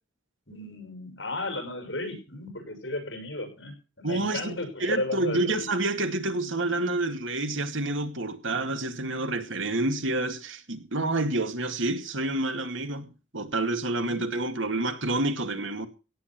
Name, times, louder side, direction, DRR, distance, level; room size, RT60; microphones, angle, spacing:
voice 1, 0.5-5.7 14.0-14.2, left 2 dB, 65° left, 6.0 m, -34 dB
voice 2, 4.0-15.9, right 2 dB, 75° right, 2.2 m, -28 dB
17.0 x 8.7 x 5.9 m
head